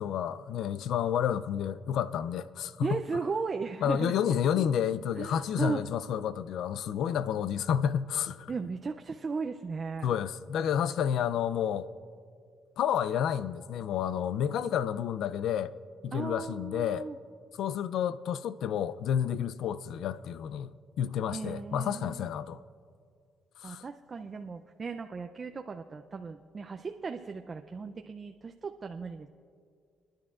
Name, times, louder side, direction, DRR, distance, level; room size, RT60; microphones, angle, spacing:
voice 1, 0.0-3.0 3.8-8.5 10.0-11.9 12.8-15.7 16.0-17.1 17.6-22.6 23.6-23.8, left 9 dB, 80° left, 0.4 m, -30 dB
voice 2, 2.8-4.1 4.5-4.7 5.2-5.8 8.5-10.1 16.1-17.2 21.3-22.3 23.6-29.3, right 4 dB, 40° right, 0.5 m, -36 dB
25.5 x 10.5 x 2.5 m
cardioid pair, 90°, 0 cm